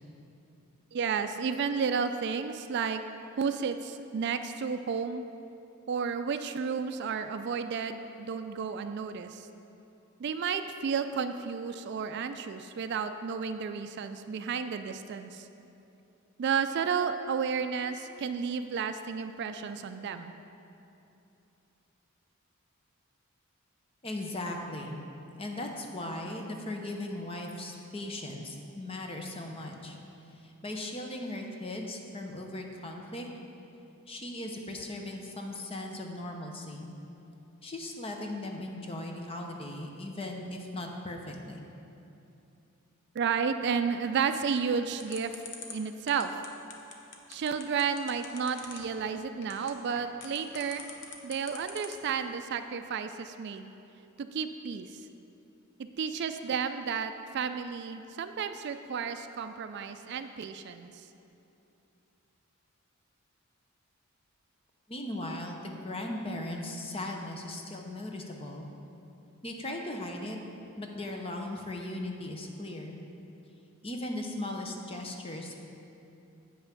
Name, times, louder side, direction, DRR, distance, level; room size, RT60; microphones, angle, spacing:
voice 1, 0.9-3.0 3.4-5.3 5.9-9.5 10.2-15.5 16.4-20.3 43.1-45.3 45.7-46.4 47.3-50.9 51.2-53.7 54.2-55.0 55.8-61.0, right 6 dB, 50° right, 9 dB, 0.3 m, -32 dB
voice 2, 24.0-25.0 25.4-30.0 30.4-33.3 34.1-36.9 37.6-41.6 64.9-68.7 69.4-70.4 70.8-73.0 73.8-75.6, left 1 dB, 25° left, 2 dB, 0.7 m, -38 dB
sound 1, 45.0-52.1, left 6 dB, 55° left, 0.9 m, -44 dB
8.5 x 5.5 x 5.9 m, 2.8 s
head